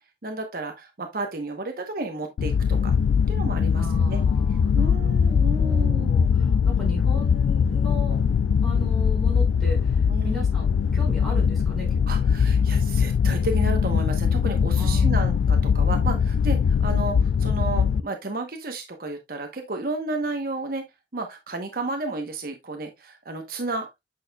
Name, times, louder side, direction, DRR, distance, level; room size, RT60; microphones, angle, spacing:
voice 1, 0.2-3.0 3.3-4.2 4.7-6.2 10.1-10.5 12.1-20.8 21.1-23.9, right 2 dB, 55° right, 1.0 m, -32 dB
sound 1, 2.4-18.0, left 6 dB, 85° left, 0.3 m, -21 dB
voice 2, 3.8-8.2 8.6-12.0 14.7-15.4, left 1 dB, ahead, 5.1 m, -37 dB
8.3 x 6.4 x 2.2 m
head